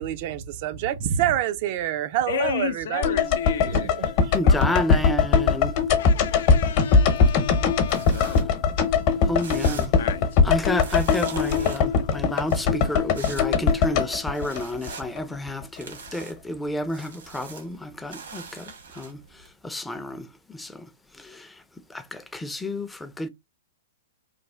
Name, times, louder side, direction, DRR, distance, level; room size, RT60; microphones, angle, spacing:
voice 1, 0.0-4.3, right 11 dB, 50° right, 0.5 m, -27 dB
voice 2, 2.3-5.0 6.0-8.6 10.0-10.5 11.9-12.1, left 10 dB, 65° left, 0.5 m, -34 dB
sound 1, 3.0-15.2 15.5-15.6, left 5 dB, 45° left, 0.9 m, -21 dB
voice 3, 4.3-5.8 8.1-8.4 9.2-9.9 10.4-21.6 21.9-23.3, left 1 dB, 5° left, 0.5 m, -31 dB
sound 2, 7.9-19.5, right 5 dB, 75° right, 1.4 m, -43 dB
3.2 x 2.3 x 3.4 m
hypercardioid pair, 115°, 0 cm